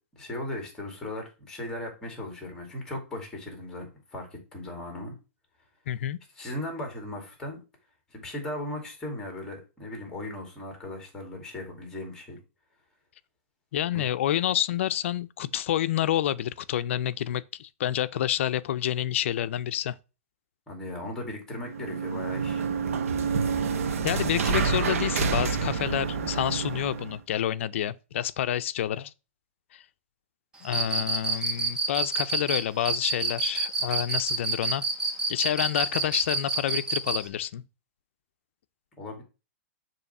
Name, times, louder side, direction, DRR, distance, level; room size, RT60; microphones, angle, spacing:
voice 1, 0.2-5.1 6.4-7.6 8.1-12.4 13.9-14.0 20.7-22.6 33.8-33.9 39.0-39.2, left 1 dB, 5° left, 2.4 m, -37 dB
voice 2, 5.9-6.2 13.7-19.9 24.0-29.1 29.7-29.8 30.6-34.8 35.3-37.6, left 11 dB, 60° left, 0.5 m, -28 dB
sound 1, 21.6-27.1, right 5 dB, 80° right, 1.1 m, -28 dB
Cricket, 30.7-37.2, right 3 dB, 10° right, 0.9 m, -27 dB
6.8 x 3.1 x 5.9 m
hypercardioid pair, 160°, 8 cm